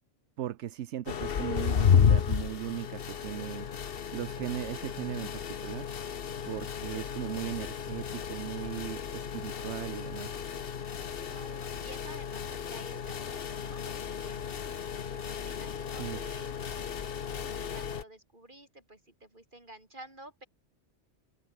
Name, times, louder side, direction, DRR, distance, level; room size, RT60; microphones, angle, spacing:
voice 1, 0.4-3.7 4.1-5.9 6.4-10.4 16.0-16.2, right 12 dB, 75° right, 1.0 m, -38 dB
sound 1, 1.1-18.0, left 7 dB, 55° left, 1.1 m, -32 dB
voice 2, 11.2-16.5 17.3-20.5, right 1 dB, 45° right, 5.8 m, -51 dB
omnidirectional pair, 1.2 m